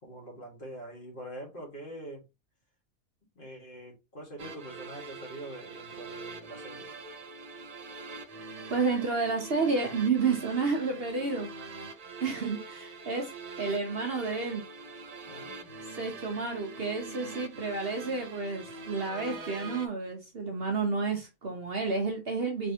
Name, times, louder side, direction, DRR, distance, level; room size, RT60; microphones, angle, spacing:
voice 1, 0.0-2.2 3.3-6.9 15.3-15.8, right 1 dB, 40° left, 1.8 m, -44 dB
sound 1, 4.4-19.9, right 3 dB, 65° right, 0.3 m, -44 dB
voice 2, 8.7-11.7 12.2-13.3 13.6-14.6 15.9-22.7, right 4 dB, 50° right, 1.0 m, -30 dB
4.5 x 3.4 x 2.8 m
omnidirectional pair, 1.5 m